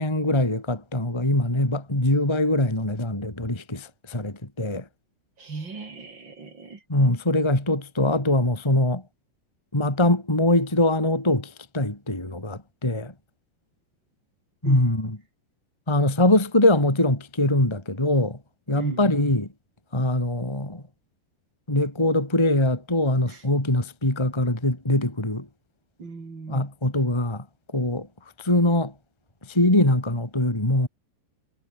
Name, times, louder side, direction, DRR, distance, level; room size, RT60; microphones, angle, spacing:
voice 1, 0.0-4.8 6.9-9.0 9.7-13.1 14.6-15.2 15.9-18.4 18.7-19.5 19.9-20.8 21.7-25.5 26.5-27.4 27.7-28.1 28.4-28.9 29.5-30.9, left 1 dB, 5° left, 3.3 m, -22 dB
voice 2, 5.4-6.8 14.6-14.9 18.7-19.3 23.3-23.4 26.0-26.7, right 4 dB, 25° right, 4.0 m, -34 dB
omnidirectional pair, 5.0 m